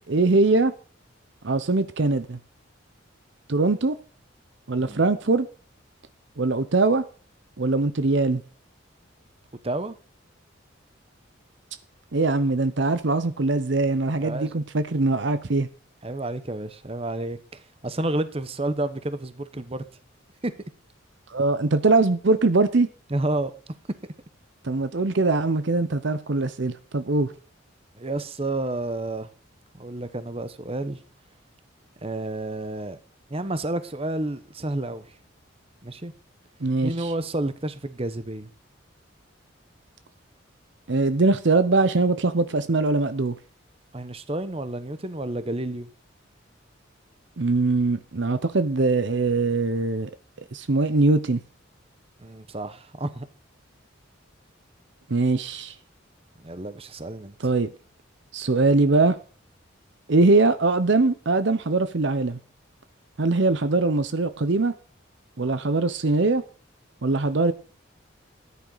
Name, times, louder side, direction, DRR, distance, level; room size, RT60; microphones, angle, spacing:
voice 1, 0.1-0.7 1.4-2.4 3.5-4.0 4.7-5.5 6.4-7.0 7.6-8.4 12.1-15.7 21.3-22.9 24.6-27.3 36.6-37.1 40.9-43.3 47.4-50.1 50.5-51.4 55.1-55.7 57.4-57.7 58.3-59.2 60.1-62.4 63.2-64.7 65.4-66.4 67.0-67.5, right 3 dB, 60° right, 0.7 m, -22 dB
voice 2, 9.6-10.0 14.2-14.6 16.0-19.8 23.1-23.5 28.0-29.3 29.7-31.0 32.0-33.0 33.3-35.2 35.8-36.1 36.8-38.5 43.9-45.9 52.2-53.3 56.4-57.3, right 2 dB, 30° right, 1.0 m, -30 dB
14.0 x 10.5 x 4.0 m
head